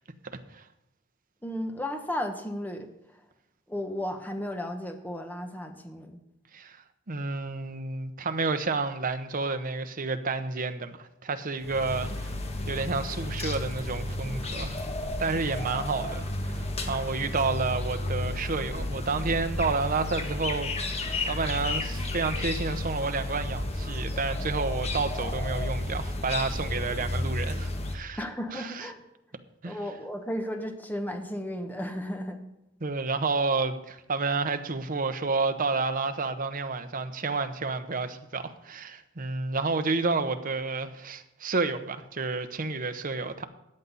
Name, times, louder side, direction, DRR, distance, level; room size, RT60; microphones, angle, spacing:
voice 1, 1.4-2.9 3.7-6.2 28.2-29.0 29.6-32.4, left 1 dB, 10° left, 1.2 m, -34 dB
voice 2, 7.1-12.4 12.7-14.8 15.2-28.2 28.5-28.8 29.6-29.8 32.8-43.4, right 3 dB, 45° right, 0.9 m, -30 dB
sound 1, 11.6-27.9, left 2 dB, 35° left, 1.4 m, -32 dB
14.0 x 9.4 x 4.1 m
head